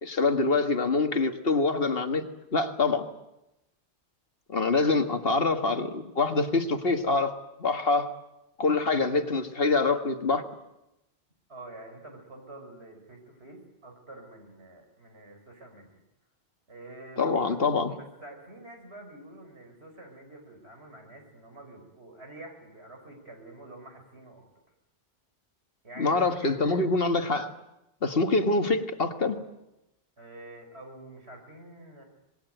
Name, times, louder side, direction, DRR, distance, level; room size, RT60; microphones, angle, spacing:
voice 1, 0.0-3.1 4.5-7.3 7.6-8.1 8.6-10.4 17.2-17.9 26.0-27.5 28.0-29.4, left 3 dB, 60° left, 7 dB, 1.8 m, -25 dB
voice 2, 11.5-16.0 16.7-17.6 17.9-24.4 25.8-26.9 30.2-32.0, right 2 dB, 75° right, 3 dB, 5.8 m, -47 dB
26.0 x 20.5 x 9.2 m, 0.92 s
omnidirectional pair, 1.1 m